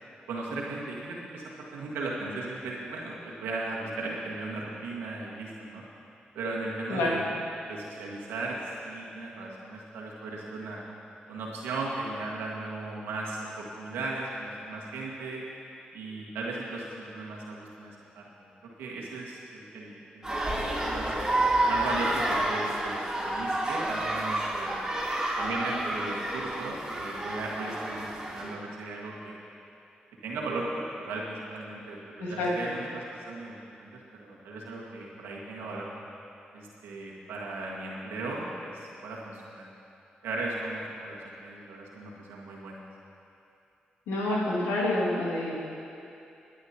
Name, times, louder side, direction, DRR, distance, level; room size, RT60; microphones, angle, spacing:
voice 1, 0.3-1.4 1.7-5.8 6.3-7.2 7.7-8.6 8.8-10.8 11.3-15.4 15.9-18.5 18.8-21.1 21.7-24.8 25.4-29.4 30.2-35.9 36.5-39.7 40.2-42.8, right 2 dB, 85° right, -3 dB, 1.8 m, -37 dB
sound 1, 20.2-28.5, right 1 dB, 15° right, 3.1 m, -29 dB
voice 2, 32.2-32.7 44.1-45.5, left 1 dB, 85° left, -5 dB, 2.2 m, -28 dB
21.0 x 9.3 x 2.9 m, 2.7 s
hypercardioid pair, 40°, 4 cm